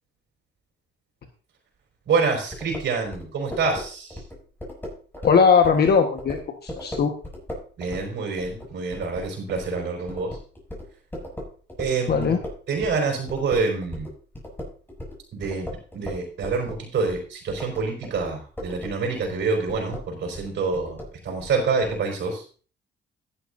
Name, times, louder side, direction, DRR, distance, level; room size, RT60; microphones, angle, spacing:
voice 1, 2.1-4.2 7.8-10.4 11.8-12.3 12.7-14.1 15.3-22.4, right 4 dB, 65° right, 0 dB, 4.7 m, -27 dB
sound 1, 2.5-13.0 13.3-22.0, left 1 dB, 10° left, 7.0 m, -38 dB
voice 2, 5.2-7.1 12.1-12.4, left 6 dB, 55° left, 4 dB, 1.3 m, -19 dB
14.5 x 11.0 x 2.6 m, 0.40 s
cardioid pair, 90°, 20 cm